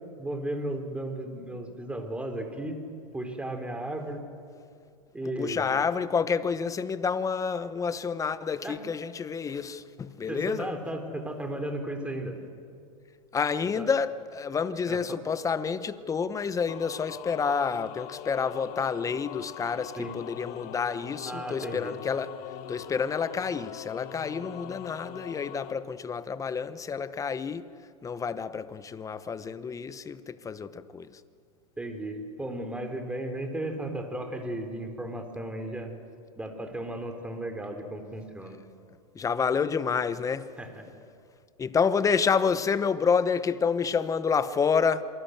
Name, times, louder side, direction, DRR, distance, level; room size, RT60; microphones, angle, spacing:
voice 1, 0.2-2.8 3.1-4.2 5.1-5.7 8.6-8.8 10.3-12.4 13.8-13.9 14.9-15.2 20.0-20.2 21.3-21.9 31.8-35.9 36.4-38.6 40.6-40.7, right 1 dB, 5° right, 3.7 m, -35 dB
voice 2, 5.2-10.7 13.3-22.4 22.7-27.7 28.0-31.2 39.1-40.5 41.6-45.0, left 6 dB, 15° left, 1.0 m, -29 dB
sound 1, 16.7-25.7, left 12 dB, 45° left, 1.4 m, -42 dB
27.5 x 23.5 x 8.0 m
hypercardioid pair, 120°, 20 cm